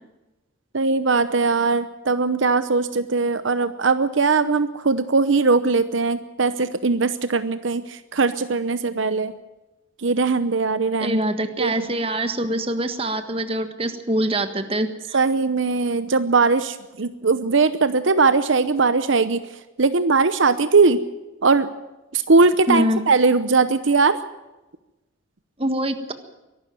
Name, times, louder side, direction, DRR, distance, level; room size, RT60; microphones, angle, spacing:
voice 1, 0.7-9.3 10.0-11.2 11.6-11.9 15.1-19.4 19.8-21.0 21.4-21.7 22.1-24.2, right 4 dB, 70° right, 12 dB, 0.8 m, -20 dB
voice 2, 11.0-15.2 22.7-23.0 25.6-26.1, right 1 dB, 30° right, 8 dB, 1.6 m, -24 dB
23.0 x 12.5 x 9.3 m, 1.1 s
head